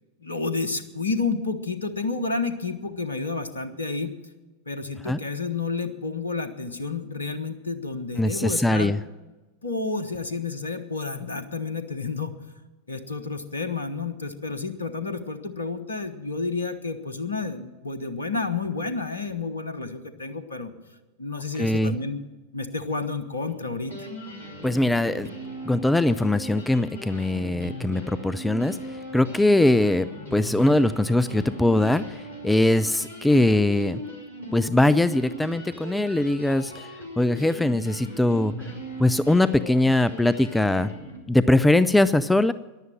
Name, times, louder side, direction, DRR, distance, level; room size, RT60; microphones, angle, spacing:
voice 1, 0.2-4.1 4.7-8.9 9.6-12.3 12.9-20.7 21.2-22.2 22.5-24.1, left 4 dB, 75° left, 11 dB, 1.1 m, -30 dB
voice 2, 8.2-9.0 21.6-22.0 24.6-25.3 25.6-34.0 34.5-36.9 37.2-38.5 39.0-40.9 41.3-42.5, left 1 dB, 5° left, 16 dB, 0.4 m, -21 dB
sound 1, 23.5-23.6 23.8-41.2, equal, 85° right, 4.7 m, -38 dB
14.5 x 11.0 x 7.5 m, 1.1 s
figure-of-eight pair, 90°, 0 cm